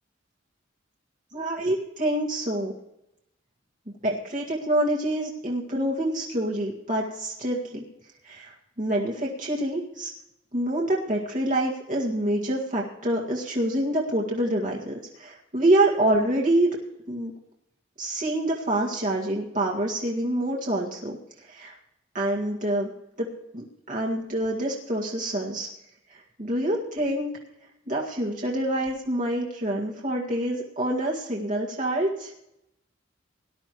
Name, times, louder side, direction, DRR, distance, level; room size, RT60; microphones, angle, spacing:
voice 1, 1.3-2.7 4.0-7.8 8.2-10.1 10.5-16.7 17.1-17.3 18.0-21.2 21.5-21.7 22.1-22.9 23.2-25.7 26.1-27.3 27.9-32.3, right 1 dB, 45° right, -3 dB, 1.9 m, -26 dB
19.0 x 11.0 x 3.1 m, 0.85 s
head